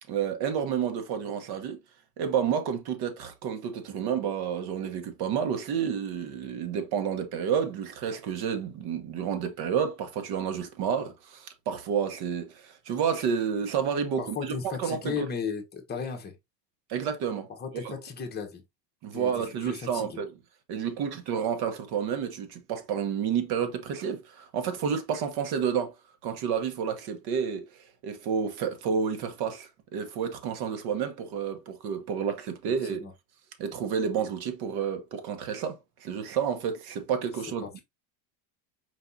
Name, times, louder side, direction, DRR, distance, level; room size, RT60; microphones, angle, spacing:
voice 1, 0.1-1.8 2.2-15.3 16.9-17.5 17.7-17.9 19.0-20.3 20.7-25.9 26.2-33.0 33.6-37.8, right 7 dB, 50° right, 1.2 m, -30 dB
voice 2, 14.2-16.3 17.6-18.6 19.1-20.2 32.9-33.1 37.6-37.8, left 6 dB, 20° left, 1.1 m, -35 dB
4.7 x 3.5 x 2.7 m
supercardioid pair, 140°, 49 cm